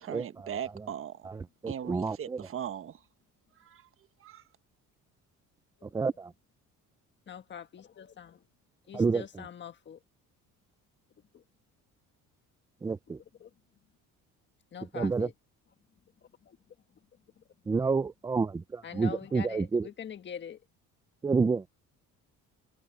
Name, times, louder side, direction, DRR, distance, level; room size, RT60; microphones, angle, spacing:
voice 1, 0.0-1.3 1.7-3.0 3.6-3.9 4.2-4.4, right 9 dB, 40° right, 1.3 m, -39 dB
voice 2, 1.6-2.4 5.8-6.3 8.9-9.2 12.8-13.2 14.9-15.3 17.7-19.9 21.2-21.6, right 4 dB, 10° right, 0.4 m, -29 dB
voice 3, 7.3-8.4 8.9-10.0 11.3-11.4 13.2-13.5 14.7-15.3 16.4-16.6 17.4-17.5 18.8-20.6, left 8 dB, 35° left, 1.5 m, -44 dB
cardioid pair, 135°, 32 cm